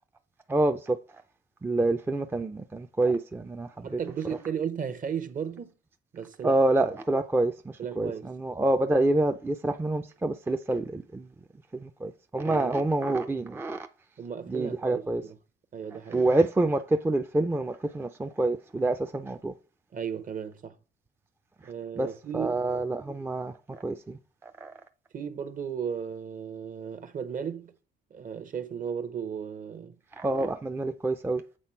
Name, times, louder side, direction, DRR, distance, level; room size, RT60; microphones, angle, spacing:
voice 1, 0.5-1.0 1.6-4.4 6.4-7.5 8.0-11.3 11.7-13.9 14.5-15.2 16.1-19.5 22.0-24.7 30.2-31.4, right 2 dB, 10° right, 0.4 m, -27 dB
voice 2, 3.8-5.7 6.1-6.6 7.8-8.3 12.4-12.7 14.2-15.3 15.7-16.3 19.9-20.7 21.6-22.6 25.1-27.7 28.1-30.0, right 7 dB, 45° right, 0.8 m, -35 dB
7.5 x 3.6 x 4.4 m
cardioid pair, 90°, 20 cm